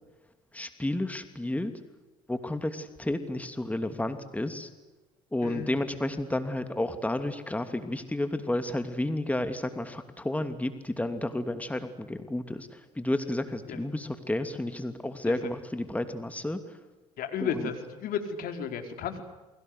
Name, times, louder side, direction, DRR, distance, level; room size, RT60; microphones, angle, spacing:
voice 1, 0.5-1.7 2.3-4.7 5.3-16.8 17.4-17.7, left 1 dB, 10° left, 9 dB, 2.8 m, -31 dB
voice 2, 5.4-5.7 13.7-13.8 15.2-15.3 17.2-17.7 18.0-19.2, left 7 dB, 65° left, 6 dB, 4.7 m, -33 dB
29.5 x 23.0 x 8.1 m, 1.1 s
hypercardioid pair, 60°, 16 cm